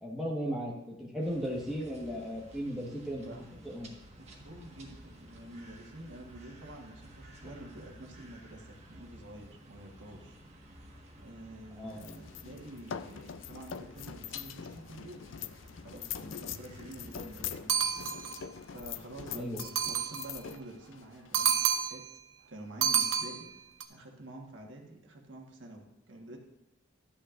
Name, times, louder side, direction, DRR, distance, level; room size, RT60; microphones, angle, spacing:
voice 1, 0.0-3.2 3.6-3.9 11.7-12.0 19.3-19.6, equal, ahead, -3 dB, 1.4 m, -36 dB
sound 1, 1.2-17.6, right 1 dB, 35° right, 1.4 m, -54 dB
voice 2, 3.1-3.5 4.1-15.3 15.8-17.9 18.7-19.4 19.7-22.0 22.5-23.5 23.9-26.4, right 1 dB, 70° right, 1 dB, 1.4 m, -48 dB
sound 2, 11.9-21.9, left 8 dB, 75° left, 0.4 m, -43 dB
sound 3, 17.7-18.5 19.6-20.4 21.3-22.1 22.8-23.8, right 8 dB, 85° right, 0.7 m, -30 dB
12.5 x 8.6 x 2.5 m, 0.95 s
head